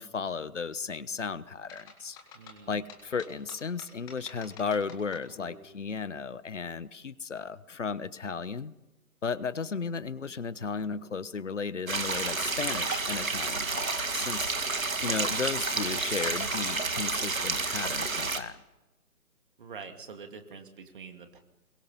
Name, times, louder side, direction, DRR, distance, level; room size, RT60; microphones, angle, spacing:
voice 1, 0.0-2.2 2.7-8.7 9.2-14.6 15.0-18.6, left 5 dB, 55° left, 17 dB, 1.2 m, -34 dB
sound 1, 1.7-5.6, left 5 dB, 10° left, 1.9 m, -49 dB
voice 2, 2.3-2.8 19.6-21.4, right 5 dB, 35° right, 6 dB, 2.5 m, -45 dB
sound 2, 11.9-18.4, right 3 dB, 65° right, 2.4 m, -30 dB
28.0 x 22.0 x 5.5 m, 1.1 s
figure-of-eight pair, 150°, 44 cm